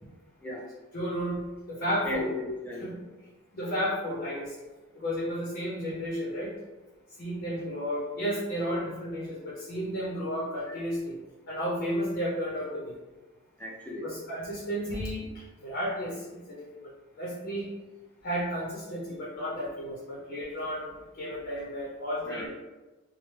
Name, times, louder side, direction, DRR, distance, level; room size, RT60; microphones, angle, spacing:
voice 1, 0.9-2.3 2.8-2.9 3.5-4.6 4.9-6.5 7.2-11.2 11.5-12.9 14.0-17.7 18.2-22.5, equal, 50° left, -5 dB, 0.6 m, -33 dB
voice 2, 2.1-2.9 13.6-14.1 22.3-22.5, left 2 dB, 5° left, -4 dB, 0.4 m, -35 dB
3.1 x 2.0 x 3.1 m, 1.1 s
head